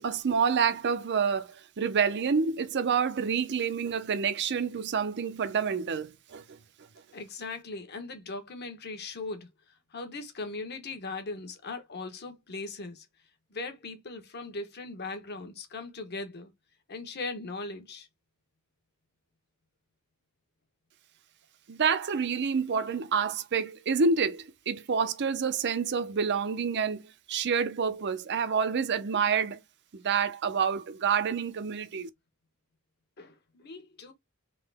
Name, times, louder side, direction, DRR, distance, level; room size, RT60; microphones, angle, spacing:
voice 1, 0.0-6.6 21.7-29.6 29.9-32.1, right 6 dB, 55° right, 0.5 m, -28 dB
voice 2, 7.1-9.5 9.9-13.1 13.5-16.5 16.9-18.1 33.2-34.1, left 3 dB, 50° left, 1.0 m, -39 dB
3.7 x 2.9 x 3.4 m
head